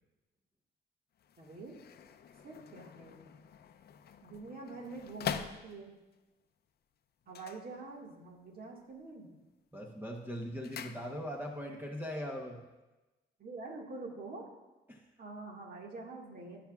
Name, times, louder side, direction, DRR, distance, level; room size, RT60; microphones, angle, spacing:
sound 1, 1.1-6.2 7.2-8.4 8.6-9.1 9.5-11.6 11.8-11.9, left 8 dB, 55° left, 0.6 m, -45 dB
voice 1, 1.4-1.8 2.4-3.3 4.2-6.0 7.3-9.3 13.4-14.5 15.2-16.6, right 3 dB, 50° right, 0 dB, 1.8 m, -46 dB
voice 2, 9.7-12.6 14.9-15.0, equal, 10° right, 0 dB, 1.0 m, -40 dB
16.0 x 6.0 x 2.4 m, 1.1 s
cardioid pair, 90°, 20 cm